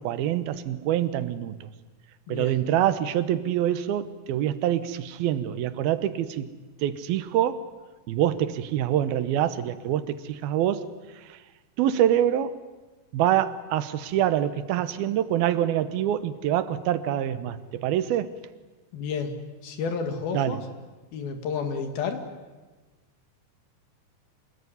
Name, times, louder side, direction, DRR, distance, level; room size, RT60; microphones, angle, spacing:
voice 1, 0.0-1.7 2.3-6.5 6.8-7.6 8.1-10.9 11.3-11.4 11.8-12.6 13.1-18.3 20.3-20.6, right 11 dB, 85° right, 13 dB, 2.9 m, -25 dB
voice 2, 2.3-2.6 18.9-19.3 19.6-20.6 21.1-22.2, left 5 dB, 80° left, 7 dB, 4.0 m, -30 dB
26.5 x 19.5 x 9.6 m, 1.3 s
omnidirectional pair, 4.2 m